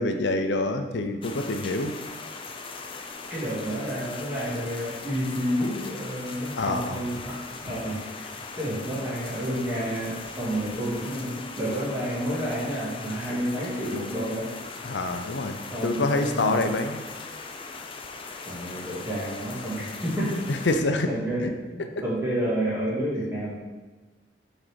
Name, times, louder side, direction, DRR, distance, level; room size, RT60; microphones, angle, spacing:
voice 1, 0.0-2.0 6.6-7.0 14.8-17.0 20.5-21.1 21.4-21.5, left 2 dB, 90° left, 6 dB, 0.6 m, -26 dB
sound 1, 1.2-20.8, left 4 dB, 30° left, 0.5 m, -39 dB
voice 2, 3.3-8.3 8.6-14.5 15.7-16.7 18.5-20.4 21.1-23.5, equal, 15° right, -7 dB, 2.1 m, -30 dB
6.2 x 4.4 x 5.1 m, 1.3 s
head